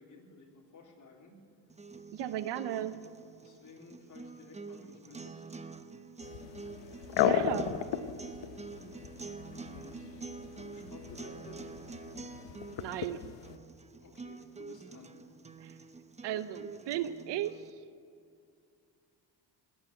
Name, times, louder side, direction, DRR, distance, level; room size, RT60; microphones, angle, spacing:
voice 1, 0.0-1.3 3.4-5.5 9.5-11.8 14.0-15.2, left 3 dB, 45° left, 0 dB, 3.5 m, -54 dB
sound 1, 1.7-17.7, right 4 dB, 15° right, 0.9 m, -47 dB
voice 2, 2.1-3.0 7.1-7.7 12.8-13.2 15.6-15.8 16.2-17.7, right 12 dB, 75° right, 13 dB, 0.8 m, -35 dB
sound 2, 6.2-13.6, left 10 dB, 80° left, 1.0 m, -36 dB
20.0 x 8.9 x 8.2 m, 2.4 s
cardioid pair, 95°, 42 cm